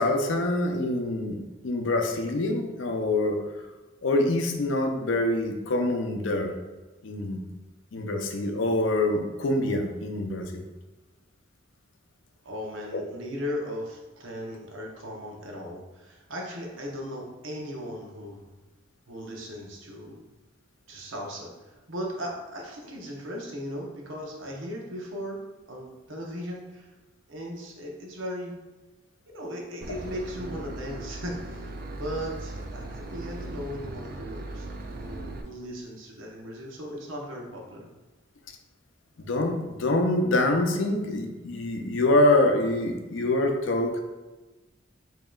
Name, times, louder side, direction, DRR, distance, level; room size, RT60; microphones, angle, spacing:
voice 1, 0.0-1.4 1.6-3.4 4.0-6.5 7.0-7.4 7.9-10.6 39.2-44.0, left 2 dB, 75° left, 4 dB, 0.5 m, -25 dB
voice 2, 12.4-18.5 19.1-20.2 20.9-25.4 25.7-26.9 27.3-28.6 29.3-34.7 35.0-37.9, equal, 80° right, -1 dB, 0.8 m, -37 dB
Boat Water vehicle / Engine, 29.8-35.4, right 2 dB, 45° right, 0.3 m, -38 dB
5.0 x 2.9 x 2.3 m, 1.2 s
head